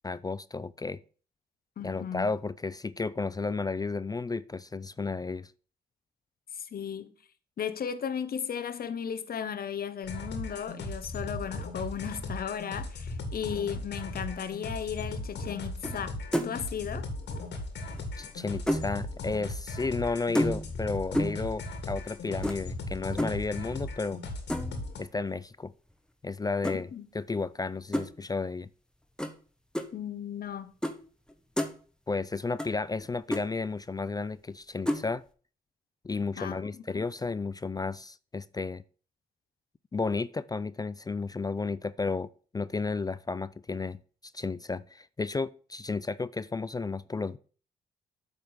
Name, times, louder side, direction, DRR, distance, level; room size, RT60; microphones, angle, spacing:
voice 1, 0.0-1.0 1.8-5.5 18.2-24.2 25.0-25.7 26.2-26.9 27.1-28.7 32.1-35.2 36.0-38.8 39.9-44.0 44.3-47.4, left 4 dB, 20° left, 0.4 m, -33 dB
voice 2, 1.8-2.3 6.5-7.2 7.6-16.2 16.4-17.1 26.7-27.1 29.9-30.7 36.4-37.0, left 8 dB, 55° left, 0.9 m, -35 dB
sound 1, 10.0-25.0, left 2 dB, 75° left, 1.9 m, -38 dB
sound 2, 15.8-16.1 16.3-16.7 17.9-18.9 20.3-20.8 21.1-21.5 22.4-22.6 23.2-23.4 24.5-24.8 26.6-26.8 27.9-28.1 29.2-29.3 29.7-29.9 30.8-31.0 31.3-31.7 32.6-32.7 33.0-33.1 33.3-33.4 34.9-35.1, equal, 5° left, 1.2 m, -30 dB
8.6 x 3.6 x 6.2 m
supercardioid pair, 50°, 18 cm